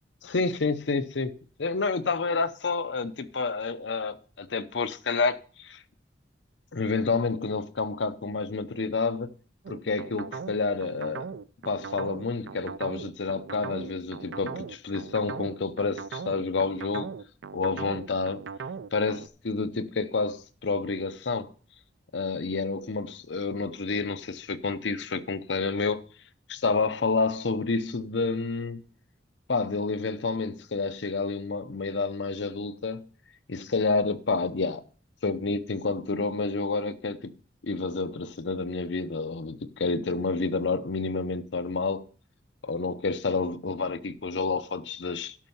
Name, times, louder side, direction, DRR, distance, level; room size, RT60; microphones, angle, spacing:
voice 1, 0.2-1.3 1.6-5.8 6.7-9.3 9.7-11.3 11.7-17.1 17.5-18.4 18.9-21.5 22.1-26.0 26.5-28.8 29.5-33.0 33.5-34.8 35.2-37.3 37.6-42.0 42.6-45.4, left 4 dB, 85° left, 0.7 m, -29 dB
sound 1, 9.6-19.3, right 5 dB, 85° right, 0.5 m, -38 dB
12.0 x 5.5 x 5.5 m
head